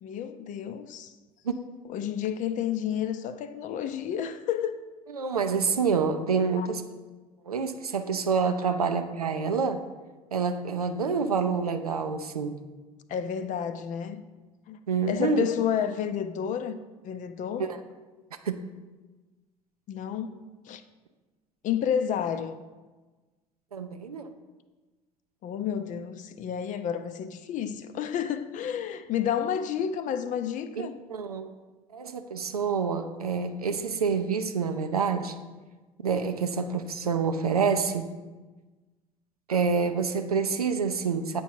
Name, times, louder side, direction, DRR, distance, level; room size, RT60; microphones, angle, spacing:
voice 1, 0.0-1.1 1.8-4.8 6.6-6.7 13.1-14.2 14.7-14.8 15.1-17.7 19.9-20.4 20.7-20.8 21.6-22.6 25.4-31.0, left 9 dB, 45° left, 0.5 m, -30 dB
voice 2, 5.1-6.8 7.5-9.8 10.3-12.6 14.9-15.5 17.6-17.8 18.4-18.6 23.7-24.3 30.8-31.5 31.9-35.3 36.0-38.1 39.5-41.4, right 5 dB, 90° right, 0.5 m, -27 dB
7.9 x 4.5 x 4.5 m
figure-of-eight pair, 65°, 19 cm